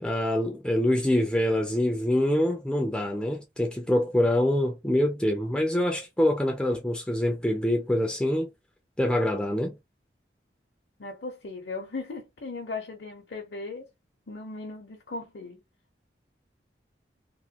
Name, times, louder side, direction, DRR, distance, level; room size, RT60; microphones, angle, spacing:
voice 1, 0.0-8.5 9.0-9.8, left 1 dB, 5° left, 0.3 m, -25 dB
voice 2, 11.0-13.9 14.3-15.6, left 3 dB, 70° left, 0.6 m, -37 dB
2.9 x 2.2 x 2.8 m
head